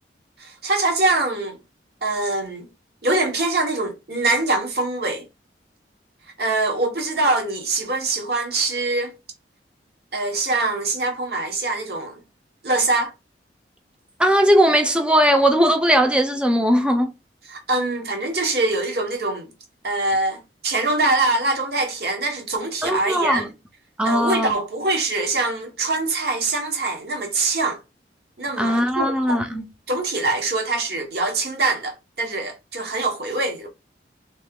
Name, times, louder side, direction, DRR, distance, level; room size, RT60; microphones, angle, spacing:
voice 1, 0.4-1.6 2.0-2.7 3.0-5.3 6.4-9.1 10.1-12.2 12.6-13.1 17.5-19.5 19.8-23.5 24.0-27.8 28.4-29.4 29.9-33.7, right 2 dB, 60° right, 1.2 m, -23 dB
voice 2, 14.2-17.1 22.8-23.4 24.0-24.5 28.6-29.7, equal, 5° right, 0.5 m, -18 dB
3.1 x 2.8 x 3.6 m
head